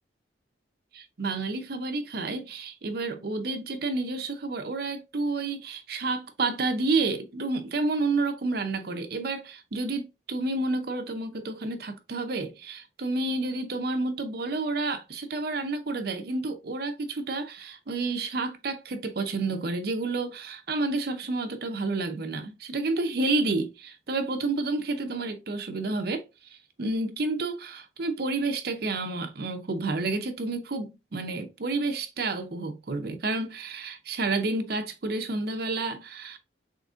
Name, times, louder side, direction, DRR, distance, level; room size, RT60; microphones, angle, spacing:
voice 1, 0.9-26.2 26.5-36.4, right 3 dB, 55° right, 0.6 m, -30 dB
3.7 x 3.5 x 2.5 m
head